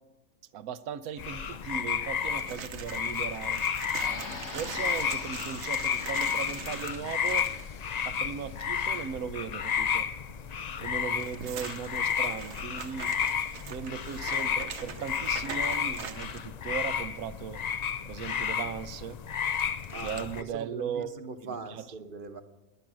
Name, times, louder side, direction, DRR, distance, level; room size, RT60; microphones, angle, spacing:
voice 1, 0.5-4.0 4.5-7.5 8.0-10.1 10.8-13.1 13.7-17.6 18.1-19.2 20.0-21.1 21.5-21.9, right 7 dB, 80° right, 14 dB, 1.2 m, -38 dB
sound 1, 1.2-20.4, left 7 dB, 80° left, 0.3 m, -32 dB
sound 2, 2.2-7.7 10.9-16.5 19.5-20.2, right 7 dB, 55° right, 1.1 m, -43 dB
sound 3, 4.0-9.0, left 4 dB, 55° left, 1.6 m, -45 dB
voice 2, 19.9-22.4, right 4 dB, 40° right, 8 dB, 1.1 m, -41 dB
19.5 x 10.5 x 6.2 m, 1.1 s
omnidirectional pair, 1.5 m